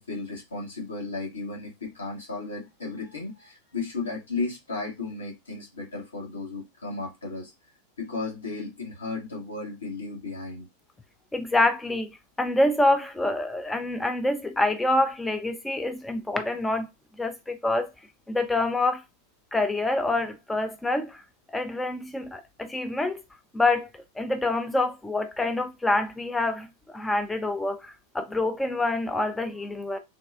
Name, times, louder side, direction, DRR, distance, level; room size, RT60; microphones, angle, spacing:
voice 1, 0.0-7.5 8.0-10.7, left 3 dB, 70° left, 1.2 m, -34 dB
voice 2, 11.3-12.1 12.4-16.9 17.2-17.9 18.3-19.0 19.5-21.2 21.5-23.2 23.5-23.9 24.2-30.0, left 2 dB, 10° left, 0.3 m, -26 dB
3.4 x 2.3 x 2.3 m
figure-of-eight pair, 90°, 0 cm